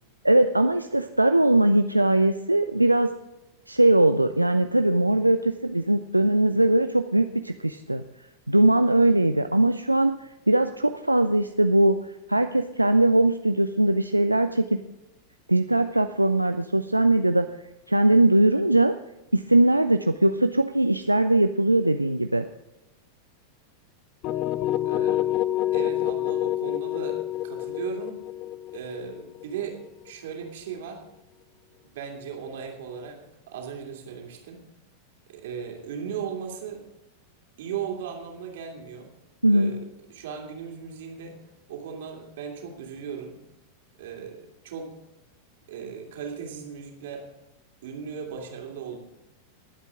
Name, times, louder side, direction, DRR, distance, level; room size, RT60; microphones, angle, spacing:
voice 1, 0.2-3.1 3.7-8.0 8.5-14.8 15.5-17.5 17.9-18.9 19.3-22.4 39.4-39.7, right 1 dB, 85° right, 9 dB, 0.4 m, -21 dB
sound 1, 24.2-30.1, left 13 dB, 40° left, 0.6 m, -27 dB
voice 2, 24.8-25.2 25.7-28.2 28.7-29.8 30.0-31.0 31.9-33.2 33.5-34.6 35.3-36.8 37.6-39.1 39.5-41.3 41.7-43.3 44.0-44.9 45.7-47.2 47.8-49.0, right 7 dB, 55° right, 1 dB, 2.9 m, -37 dB
21.0 x 8.2 x 3.6 m, 0.94 s
figure-of-eight pair, 90°, 0 cm